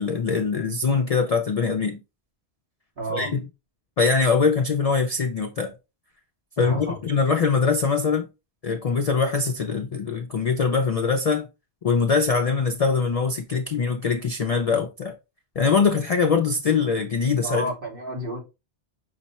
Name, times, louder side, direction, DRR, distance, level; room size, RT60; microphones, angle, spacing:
voice 1, 0.0-2.0 3.1-3.5 4.0-5.7 6.6-8.3 8.6-11.4 11.8-15.1 15.6-17.7, left 5 dB, 55° left, 0.4 m, -22 dB
voice 2, 3.0-3.3 6.6-7.0 17.4-18.4, right 1 dB, 55° right, 1.6 m, -31 dB
5.7 x 2.1 x 4.0 m
omnidirectional pair, 1.1 m